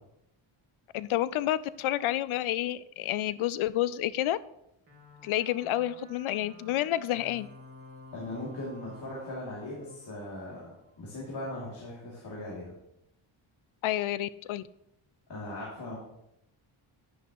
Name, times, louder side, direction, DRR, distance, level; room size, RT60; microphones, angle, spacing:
voice 1, 0.9-4.4 5.2-7.5 13.8-14.6, left 13 dB, 75° left, 17 dB, 0.6 m, -29 dB
sound 1, 4.9-11.0, left 1 dB, 25° right, 2.3 m, -51 dB
voice 2, 8.1-12.7 15.3-16.0, left 1 dB, 55° left, -5 dB, 2.8 m, -39 dB
10.0 x 10.0 x 3.0 m, 0.83 s
wide cardioid pair, 150°, 49 cm